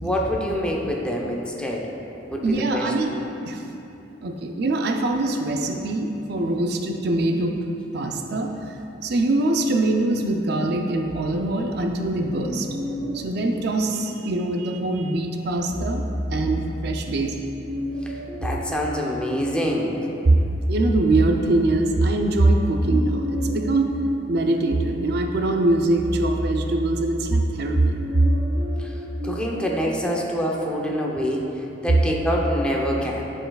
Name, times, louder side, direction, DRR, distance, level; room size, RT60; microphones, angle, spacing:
voice 1, 0.0-1.9 2.3-2.9 18.0-18.1 18.4-20.0 28.8-28.9 29.2-33.3, equal, 5° left, -2 dB, 0.6 m, -26 dB
voice 2, 2.4-3.2 3.5-3.6 4.2-7.5 7.9-12.7 13.1-16.0 16.3-17.3 20.2-20.4 20.7-23.9 24.3-28.0, right 2 dB, 60° right, 3 dB, 0.4 m, -23 dB
sound 1, 11.0-14.5 15.5-19.9 20.4-29.7, equal, 85° right, 1.3 m, -34 dB
11.0 x 4.5 x 2.3 m, 2.8 s
head